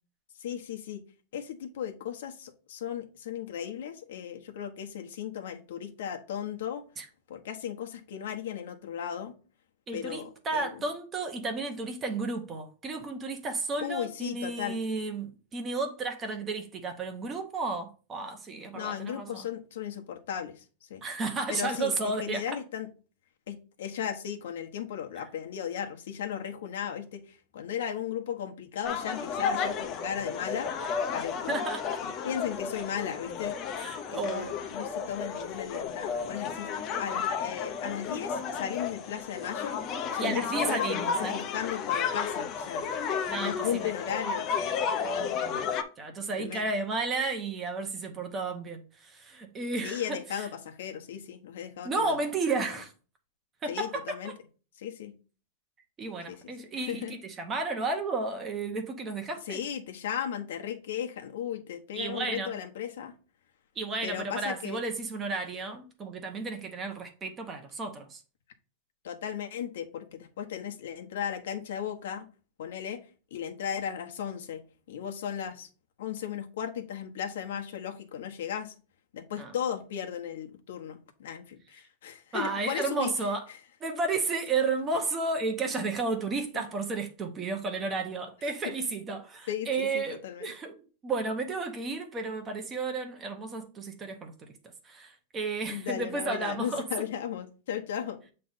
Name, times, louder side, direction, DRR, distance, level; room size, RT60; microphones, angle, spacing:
voice 1, 0.4-1.0 1.3-6.8 7.3-9.3 9.9-10.7 13.8-14.8 18.7-21.0 21.5-22.9 23.5-30.7 31.1-31.6 32.2-33.6 34.1-36.7 37.0-39.8 40.1-42.9 43.4-44.6 45.0-45.4 46.4-46.7 49.8-52.2 53.7-54.3 54.8-55.1 56.3-57.1 59.5-63.1 64.0-64.8 69.0-72.2 72.6-73.0 73.3-74.6 74.9-75.7 76.0-78.7 79.1-83.1 86.5-86.6 89.5-90.5 95.7-98.2, left 9 dB, 80° left, 1.1 m, -36 dB
voice 2, 9.9-19.5 21.0-22.4 25.2-25.3 31.5-32.0 33.8-34.5 40.2-41.4 43.3-43.9 45.4-50.5 51.8-52.9 53.6-54.4 56.0-59.6 61.9-62.5 63.7-68.2 79.4-79.5 82.3-83.5 83.8-90.8 91.0-94.5 94.8-96.9, right 3 dB, 20° right, 1.0 m, -33 dB
sound 1, 28.8-45.8, left 6 dB, 30° left, 0.7 m, -32 dB
7.7 x 3.3 x 4.1 m
supercardioid pair, 165°, 0 cm